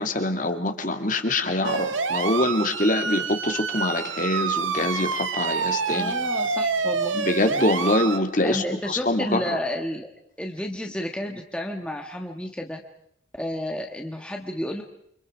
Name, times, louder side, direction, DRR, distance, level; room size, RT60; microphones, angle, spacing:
voice 1, 0.0-6.1 7.1-8.6 8.9-9.4, left 1 dB, 40° left, 6 dB, 2.2 m, -24 dB
sound 1, 1.6-8.2, right 5 dB, 90° right, 1.6 m, -27 dB
voice 2, 5.9-7.2 8.4-10.1 10.4-12.8 13.3-14.8, left 1 dB, 5° left, 2 dB, 1.4 m, -31 dB
29.5 x 25.5 x 4.8 m, 0.71 s
head